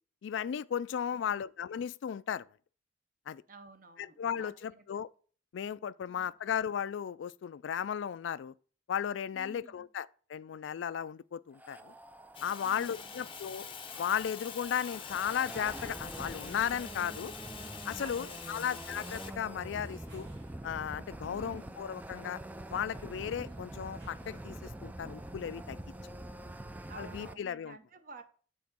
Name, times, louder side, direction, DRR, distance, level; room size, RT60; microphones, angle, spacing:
voice 1, 0.2-2.5 3.3-3.4 4.0-5.1 5.5-8.5 8.9-11.9 12.4-13.7 14.0-17.3 17.8-20.3 20.6-22.4 22.7-25.8 27.0-27.8, left 8 dB, 80° left, 0.3 m, -35 dB
voice 2, 1.1-1.5 3.5-4.8 6.1-6.3 9.3-9.9 12.6-13.3 17.9-18.7 21.3-21.8 23.4-23.7 26.8-28.2, right 3 dB, 45° right, 0.9 m, -53 dB
sound 1, 11.5-27.3, right 1 dB, 10° right, 0.3 m, -45 dB
Fire, 12.3-19.3, left 7 dB, 30° left, 0.6 m, -46 dB
sound 2, 12.9-24.7, right 1 dB, 75° right, 3.8 m, -61 dB
7.3 x 3.8 x 5.8 m
head